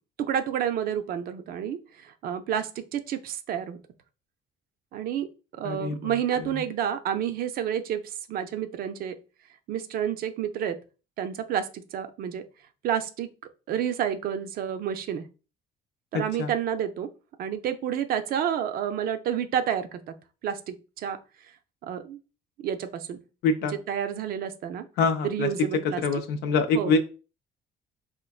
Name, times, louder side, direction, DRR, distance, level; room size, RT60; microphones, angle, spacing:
voice 1, 0.2-3.8 4.9-5.3 5.5-9.2 9.7-10.8 11.2-12.4 12.8-13.3 13.7-15.2 16.1-17.1 17.4-20.1 20.4-21.2 21.8-22.2 22.6-23.2 23.9-24.9 25.2-26.0 26.7-26.9, right 9 dB, 60° right, 10 dB, 0.5 m, -29 dB
voice 2, 5.6-6.1 6.5-6.6 16.1-16.5 23.4-23.8 25.0-27.0, left 4 dB, 75° left, 6 dB, 0.4 m, -25 dB
4.3 x 2.5 x 2.3 m, 0.34 s
cardioid pair, 110°, 17 cm